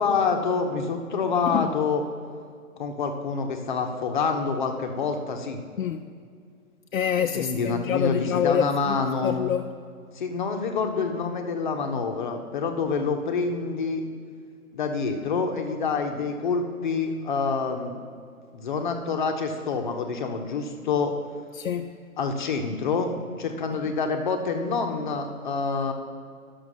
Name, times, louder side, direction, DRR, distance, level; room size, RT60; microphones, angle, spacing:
voice 1, 0.0-2.0 2.8-5.6 7.3-9.4 10.1-14.1 14.7-18.0 18.5-21.1 22.2-23.1 23.4-25.9, left 5 dB, 35° left, 0.9 m, -27 dB
voice 2, 1.5-1.8 5.8-6.1 6.9-9.7 21.5-22.0, left 8 dB, 65° left, 0.6 m, -27 dB
11.0 x 6.4 x 6.3 m
hypercardioid pair, 150°, 43 cm